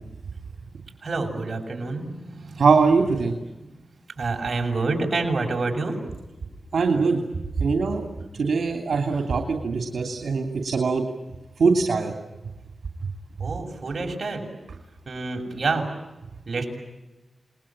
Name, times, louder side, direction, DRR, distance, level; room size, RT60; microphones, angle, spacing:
voice 1, 1.0-2.6 4.2-6.0 13.4-14.5 15.1-15.9 16.5-16.7, right 3 dB, 55° right, 2 dB, 7.0 m, -27 dB
voice 2, 2.6-3.3 6.7-7.2 7.6-8.0 8.3-11.0 11.6-12.1 13.4-13.5, right 4 dB, 85° right, 4 dB, 2.9 m, -22 dB
29.5 x 21.0 x 8.9 m, 1.0 s
wide cardioid pair, 80°, 0 cm